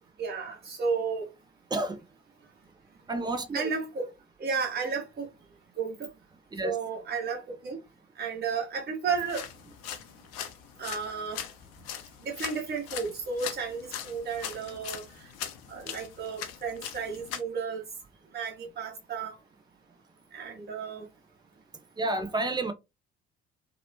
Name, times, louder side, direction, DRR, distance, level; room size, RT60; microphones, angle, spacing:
voice 1, 0.2-1.3 3.5-4.1 4.4-5.3 5.8-6.1 6.6-7.8 8.1-9.4 10.8-11.4 12.2-15.3 15.7-17.8 18.3-19.4 20.3-21.1, right 5 dB, 30° right, 1.0 m, -33 dB
voice 2, 1.7-2.0 3.1-3.7 6.5-6.8 22.0-22.7, right 2 dB, 15° right, 0.5 m, -30 dB
sound 1, 9.1-17.4, left 9 dB, 50° left, 0.5 m, -41 dB
2.9 x 2.0 x 2.6 m
figure-of-eight pair, 50°, 33 cm